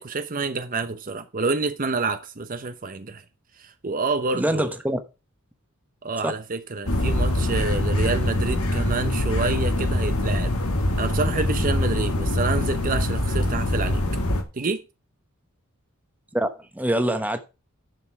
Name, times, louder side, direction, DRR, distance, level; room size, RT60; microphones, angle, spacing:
voice 1, 0.0-3.2 3.6-4.7 6.0-10.5 11.0-14.0 14.5-14.8, right 3 dB, 40° right, 0.8 m, -28 dB
voice 2, 4.3-5.0 6.2-6.3 16.3-17.4, right 1 dB, 10° right, 1.1 m, -24 dB
sound 1, 6.9-14.4, left 1 dB, 80° left, 1.9 m, -24 dB
11.0 x 6.8 x 4.7 m
head